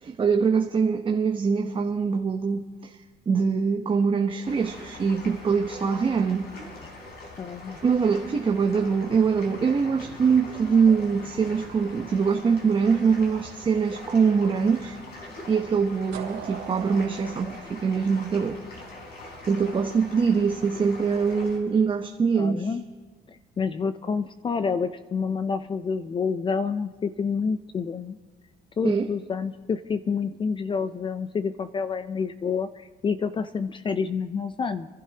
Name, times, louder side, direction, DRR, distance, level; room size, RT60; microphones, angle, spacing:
voice 1, 0.0-2.9 3.3-6.5 7.8-15.0 15.5-18.6 19.5-22.7 28.8-29.1, right 5 dB, 30° right, 3 dB, 0.9 m, -23 dB
sound 1, 4.4-21.6, left 2 dB, 65° left, 4.1 m, -42 dB
voice 2, 7.4-7.8 22.4-22.8 23.3-28.2 28.8-34.9, left 5 dB, 30° left, 11 dB, 0.5 m, -28 dB
sound 2, 16.1-19.0, right 9 dB, 85° right, 3.0 m, -40 dB
27.0 x 12.0 x 2.9 m, 1.4 s
cardioid pair, 110°, 17 cm